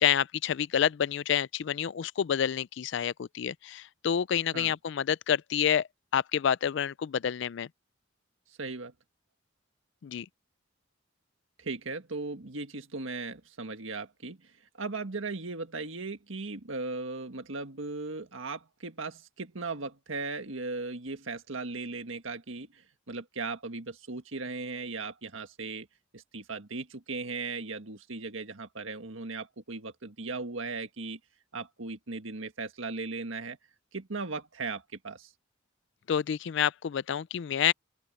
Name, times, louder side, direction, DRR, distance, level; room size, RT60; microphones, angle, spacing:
voice 1, 0.0-5.9 6.1-7.7 10.0-10.3 36.1-37.7, left 9 dB, 60° left, 0.4 m, -28 dB
voice 2, 8.6-8.9 11.6-25.9 26.1-31.2 31.5-33.6 33.9-35.3, right 3 dB, 80° right, 1.7 m, -37 dB
open air
head